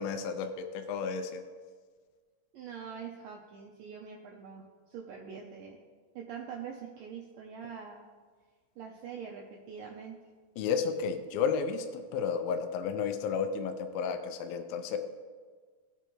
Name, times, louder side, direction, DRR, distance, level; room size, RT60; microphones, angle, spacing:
voice 1, 0.0-1.4 10.6-15.0, left 6 dB, 85° left, 6 dB, 2.1 m, -32 dB
voice 2, 2.5-5.8 6.2-8.1 8.8-10.2, right 7 dB, 85° right, 0 dB, 1.9 m, -44 dB
18.0 x 6.9 x 3.1 m, 1.5 s
omnidirectional pair, 4.9 m